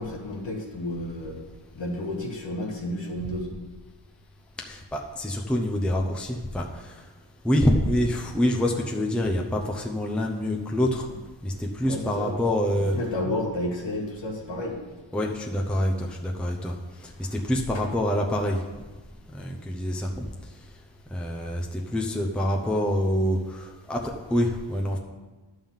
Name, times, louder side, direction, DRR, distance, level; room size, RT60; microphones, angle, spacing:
voice 1, 0.0-1.4 1.7-3.5 11.8-12.3 12.9-14.8 17.2-17.3, left 1 dB, 65° left, -1 dB, 1.9 m, -31 dB
voice 2, 4.6-6.9 7.4-11.1 11.4-13.0 15.1-16.8 17.0-18.6 19.3-20.1 21.1-25.0, left 1 dB, ahead, 0 dB, 0.7 m, -26 dB
11.0 x 3.8 x 7.2 m, 1.3 s
wide cardioid pair, 120°, 48 cm